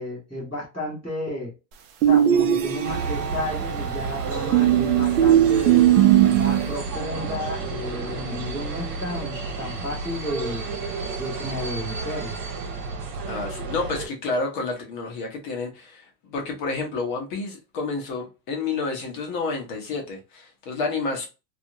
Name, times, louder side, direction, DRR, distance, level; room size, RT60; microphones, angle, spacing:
voice 1, 0.0-1.5 2.0-5.8 6.3-10.6 11.2-12.4, left 1 dB, ahead, 0.3 m, -32 dB
sound 1, 2.0-3.3 4.5-6.7, right 11 dB, 50° right, 0.6 m, -18 dB
sound 2, 2.8-14.1, right 4 dB, 70° right, 1.2 m, -31 dB
voice 2, 13.3-21.3, left 3 dB, 30° left, 0.6 m, -30 dB
2.7 x 2.4 x 2.7 m
supercardioid pair, 175°, 49 cm